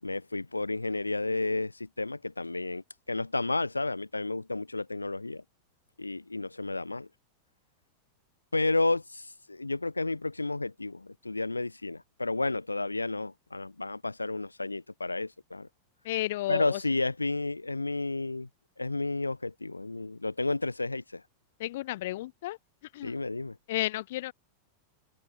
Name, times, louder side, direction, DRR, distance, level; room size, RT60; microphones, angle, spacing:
voice 1, 0.0-5.4 6.0-7.1 8.5-15.7 16.5-18.5 18.8-21.2 23.0-23.6, left 2 dB, 80° left, 6.7 m, -31 dB
voice 2, 16.1-16.6 21.6-22.6 23.0-23.1 23.7-24.3, left 16 dB, 55° left, 4.8 m, -32 dB
open air
figure-of-eight pair, 90°, 0 cm